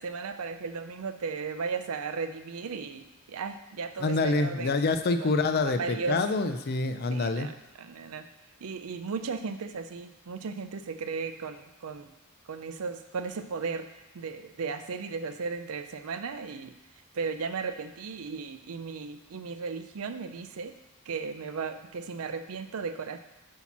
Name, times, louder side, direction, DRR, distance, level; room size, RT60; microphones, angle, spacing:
voice 1, 0.0-4.8 5.2-6.2 7.1-8.3 8.6-12.1 12.5-16.7 17.1-20.8 21.1-23.2, right 5 dB, 75° right, 9 dB, 0.5 m, -36 dB
voice 2, 4.0-7.5, left 3 dB, 45° left, 9 dB, 0.4 m, -26 dB
8.2 x 2.9 x 5.9 m, 0.98 s
head